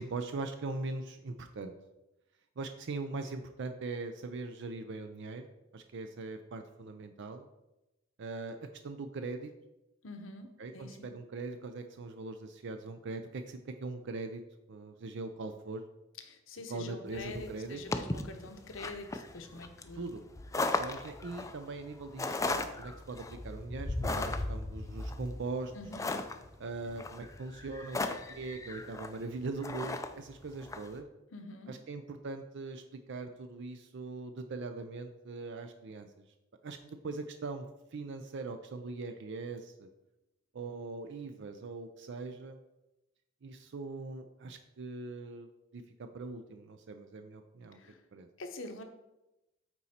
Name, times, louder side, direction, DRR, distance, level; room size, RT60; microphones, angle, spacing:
voice 1, 0.0-1.7 2.6-5.5 5.7-7.5 8.2-9.5 10.6-14.4 14.7-15.8 16.7-17.8 19.9-20.3 20.6-25.7 26.6-31.1 31.7-36.2 36.6-37.7 37.9-39.9 40.5-42.6 43.4-45.5 45.7-47.8 48.1-48.3, right 3 dB, 60° right, 7 dB, 0.5 m, -41 dB
voice 2, 10.0-11.1 16.2-20.1 25.7-26.3 31.3-31.8 47.7-48.0 48.4-48.8, left 2 dB, 70° left, 6 dB, 0.9 m, -46 dB
sound 1, 17.1-30.9, left 2 dB, 15° left, 0.4 m, -37 dB
8.9 x 4.1 x 4.3 m, 0.97 s
head